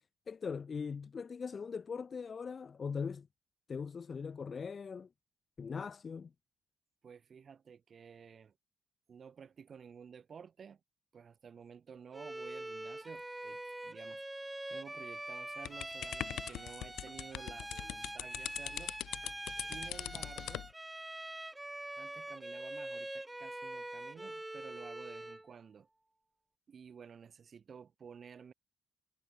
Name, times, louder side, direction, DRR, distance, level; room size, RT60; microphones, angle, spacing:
voice 1, 0.0-3.3 3.7-5.1 5.6-6.3, left 5 dB, 40° left, 0.7 m, -40 dB
voice 2, 7.0-8.5 9.1-10.8 11.1-14.2 14.7-18.9 19.6-20.7 22.0-25.9 26.7-28.5, right 6 dB, 50° right, 3.7 m, -53 dB
Bowed string instrument, 12.1-25.5, right 1 dB, 10° right, 0.4 m, -44 dB
sound 1, 15.7-20.7, left 14 dB, 85° left, 1.4 m, -41 dB
cardioid pair, 90°, 0 cm